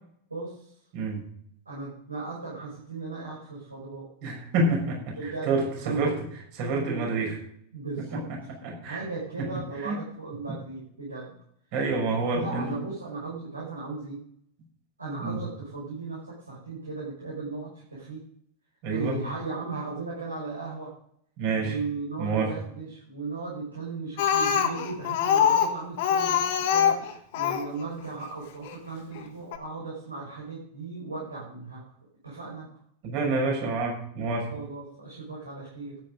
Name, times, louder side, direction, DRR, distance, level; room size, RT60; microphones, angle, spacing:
voice 1, 0.3-0.7 1.7-4.0 5.2-5.5 5.8-6.1 6.8-7.1 7.7-8.2 8.9-11.3 12.1-14.2 15.0-18.2 18.9-20.9 21.5-31.8 32.2-32.7 34.5-36.0, right 3 dB, 80° right, -6 dB, 5.7 m, -36 dB
voice 2, 4.2-6.1 6.5-7.4 8.6-9.0 9.4-9.5 9.8-10.0 11.7-12.7 15.2-15.4 18.8-19.2 21.4-21.8 22.2-22.5 33.0-34.5, right 3 dB, 45° right, 0 dB, 6.0 m, -28 dB
Speech, 24.2-27.7 28.7-28.8 29.2-29.3 29.5-29.6, left 8 dB, 50° left, 1.6 m, -24 dB
13.0 x 9.8 x 5.1 m, 0.67 s
figure-of-eight pair, 90°, 0 cm